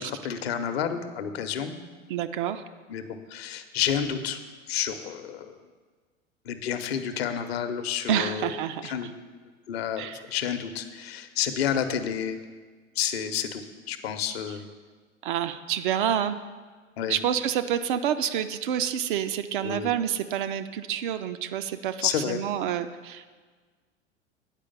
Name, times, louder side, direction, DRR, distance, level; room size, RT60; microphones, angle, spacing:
voice 1, 0.0-1.8 2.9-4.4 4.7-5.5 6.4-9.1 9.7-12.4 12.9-14.7 17.0-17.2 19.6-19.9 22.0-22.4, left 8 dB, 55° left, 9 dB, 0.8 m, -30 dB
voice 2, 2.1-2.6 8.1-8.9 10.0-10.2 15.2-16.4 17.1-23.3, right 9 dB, 45° right, 9 dB, 0.5 m, -28 dB
9.0 x 5.0 x 7.0 m, 1.5 s
figure-of-eight pair, 85°, 36 cm